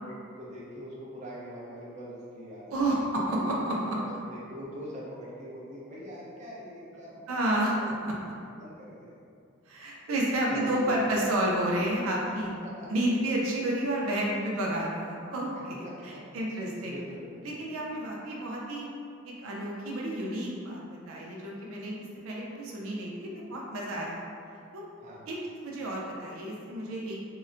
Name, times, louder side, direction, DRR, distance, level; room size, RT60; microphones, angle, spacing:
voice 1, 0.0-3.1 4.0-7.9 8.3-9.2 10.5-11.1 12.6-12.9 15.8-16.3 16.8-17.6 25.0-25.2, equal, 35° right, -7 dB, 0.7 m, -43 dB
voice 2, 2.7-4.0 7.3-8.1 9.7-12.6 12.9-16.9 17.4-18.9 19.2-24.2 24.7-24.8 25.3-25.4 25.6-27.2, right 1 dB, 75° right, -3 dB, 0.5 m, -30 dB
3.8 x 2.1 x 2.5 m, 2.4 s
head